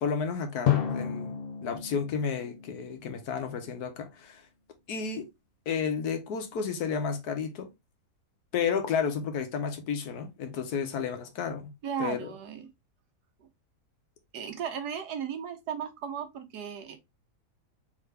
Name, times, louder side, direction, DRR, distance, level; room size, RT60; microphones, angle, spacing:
voice 1, 0.0-1.3 1.6-4.4 4.9-5.2 5.7-7.7 8.5-11.7 12.0-12.3, left 6 dB, 70° left, 1.4 m, -32 dB
Drum, 0.7-3.6, left 9 dB, 90° left, 0.5 m, -31 dB
voice 2, 11.8-12.7 14.3-17.0, right 8 dB, 75° right, 1.4 m, -35 dB
3.7 x 3.3 x 3.2 m
omnidirectional pair, 1.7 m